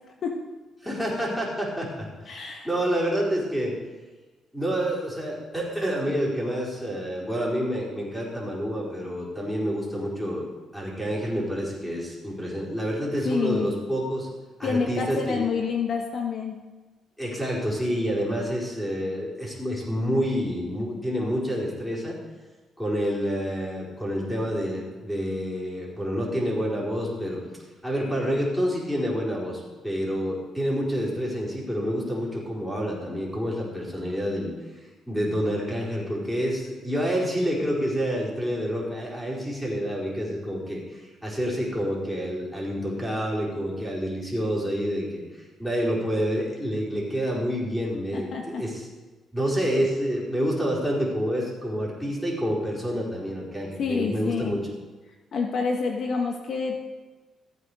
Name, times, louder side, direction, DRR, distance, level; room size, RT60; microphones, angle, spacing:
voice 1, 0.8-3.8 4.5-10.5 10.7-14.3 14.6-15.5 17.2-22.2 22.8-27.4 27.8-34.5 35.1-48.8 49.3-54.7, equal, 5° left, -4 dB, 4.6 m, -28 dB
voice 2, 2.3-2.7 13.2-13.7 14.6-16.7 48.1-48.6 53.8-54.6 55.3-56.8, left 5 dB, 60° left, 2 dB, 1.3 m, -28 dB
14.5 x 8.9 x 5.0 m, 1.2 s
cardioid pair, 90°, 0 cm